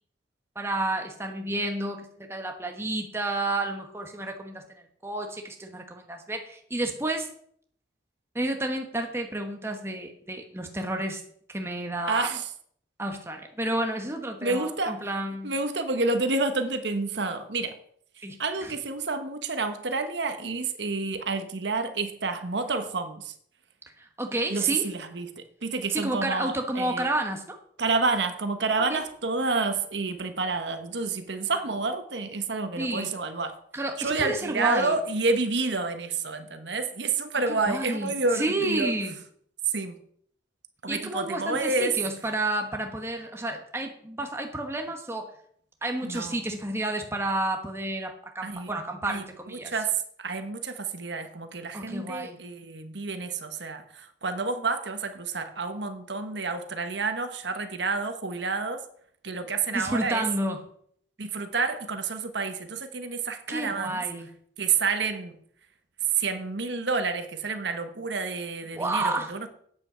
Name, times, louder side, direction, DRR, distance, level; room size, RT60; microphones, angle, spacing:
voice 1, 0.5-7.3 8.3-11.2 11.5-12.3 13.0-15.5 18.2-18.7 24.0-24.9 25.9-27.6 28.9-29.0 32.8-33.1 33.7-35.0 37.5-39.1 40.9-45.3 45.8-49.7 51.7-52.4 59.7-60.6 63.5-64.3 68.7-69.4, right 1 dB, 15° right, 4 dB, 1.3 m, -31 dB
voice 2, 12.1-12.5 14.4-14.9 15.4-17.7 18.4-23.3 24.5-27.1 27.8-33.5 34.0-38.9 39.7-40.0 40.8-41.9 46.0-46.4 48.4-48.7 49.1-49.2 49.5-58.8 59.2-60.3 61.2-64.0 64.6-65.4 66.2-69.5, right 4 dB, 75° right, 8 dB, 1.2 m, -29 dB
8.8 x 7.7 x 6.9 m, 0.64 s
head